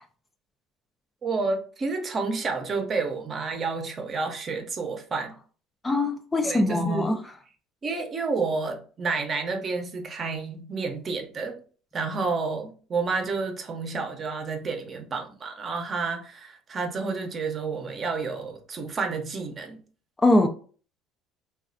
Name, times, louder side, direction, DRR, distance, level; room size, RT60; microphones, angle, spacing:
voice 1, 1.2-5.3 6.4-7.2 7.8-11.6 11.9-19.8, right 4 dB, 35° right, 0.6 m, -30 dB
voice 2, 5.8-7.2 20.2-20.5, left 2 dB, 20° left, 0.3 m, -22 dB
3.1 x 2.3 x 2.5 m
supercardioid pair, 105°, 0 cm